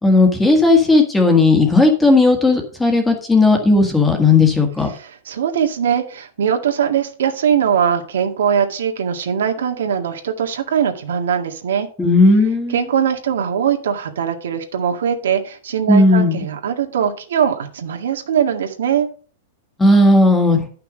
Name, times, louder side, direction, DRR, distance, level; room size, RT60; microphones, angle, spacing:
voice 1, 0.0-4.9 12.0-12.8 15.9-16.4 19.8-20.6, left 2 dB, 5° left, 4 dB, 1.6 m, -14 dB
voice 2, 4.9-11.9 12.7-19.1, right 8 dB, 85° right, 4 dB, 1.9 m, -21 dB
11.0 x 5.8 x 5.1 m, 0.41 s
supercardioid pair, 175°, 0 cm